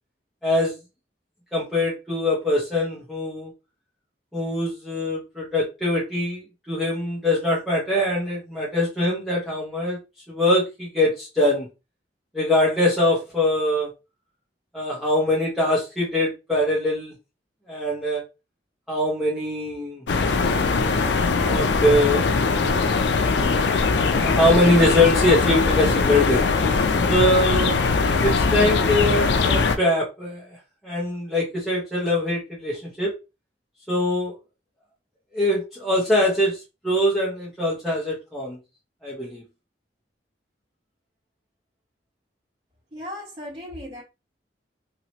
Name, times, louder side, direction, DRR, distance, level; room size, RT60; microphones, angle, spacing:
voice 1, 0.4-0.7 1.5-3.5 4.3-10.0 10.3-11.7 12.3-13.9 14.7-17.1 17.7-18.2 18.9-20.0 20.8-22.3 23.9-26.5 27.1-27.7 28.2-30.4 30.8-33.1 33.9-34.4 35.3-38.6 39.0-39.4, left 1 dB, ahead, 1.1 m, -23 dB
sound 1, 20.1-29.8, left 4 dB, 75° left, 0.4 m, -21 dB
voice 2, 42.9-44.0, left 1 dB, 35° right, 1.7 m, -36 dB
3.0 x 2.9 x 2.8 m
head